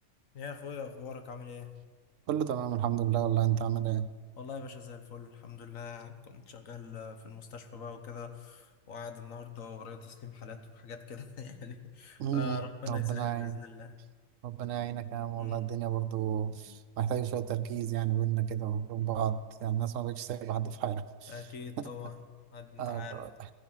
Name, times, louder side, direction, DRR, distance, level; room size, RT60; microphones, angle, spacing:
voice 1, 0.3-1.7 4.4-14.0 15.4-15.7 16.7-16.8 21.3-23.3, left 5 dB, 80° left, 7 dB, 1.6 m, -43 dB
voice 2, 2.3-4.1 12.2-12.6 12.9-13.6 14.4-21.3 22.8-23.3, right 11 dB, 80° right, 11 dB, 1.0 m, -31 dB
15.0 x 15.0 x 5.7 m, 1.5 s
omnidirectional pair, 1.4 m